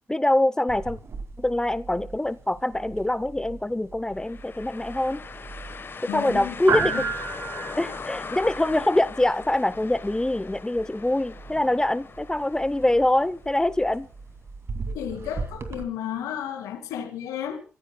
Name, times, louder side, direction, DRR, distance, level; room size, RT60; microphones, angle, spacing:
voice 1, 0.1-1.0 1.4-5.2 6.1-7.0 7.8-14.1, left 1 dB, 10° left, 0.6 m, -24 dB
sound 1, 0.7-15.8, right 4 dB, 50° right, 2.3 m, -36 dB
sound 2, 4.2-14.0, left 5 dB, 40° left, 1.2 m, -40 dB
voice 2, 6.1-7.1 14.9-17.6, left 10 dB, 85° left, 2.3 m, -33 dB
28.0 x 15.0 x 2.2 m
supercardioid pair, 50°, 6 cm